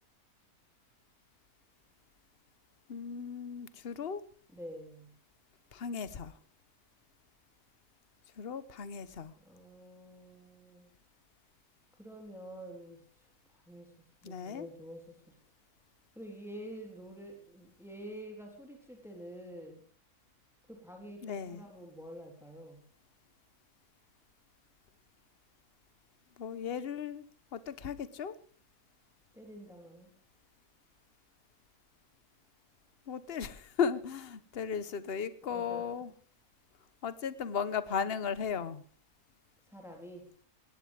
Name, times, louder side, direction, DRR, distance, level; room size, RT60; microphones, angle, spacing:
voice 1, 2.9-4.3 5.7-6.3 8.4-9.3 14.2-14.7 21.2-21.6 26.4-27.2 27.5-28.4 33.1-36.1 37.0-38.8, left 6 dB, 45° left, 15 dB, 1.2 m, -36 dB
voice 2, 4.5-5.1 9.4-10.9 11.9-13.9 14.2-15.4 16.2-19.8 20.7-22.8 29.3-30.1 35.4-35.9 39.7-40.3, right 1 dB, ahead, 2 dB, 3.8 m, -48 dB
20.5 x 17.0 x 3.5 m, 0.40 s
omnidirectional pair, 1.6 m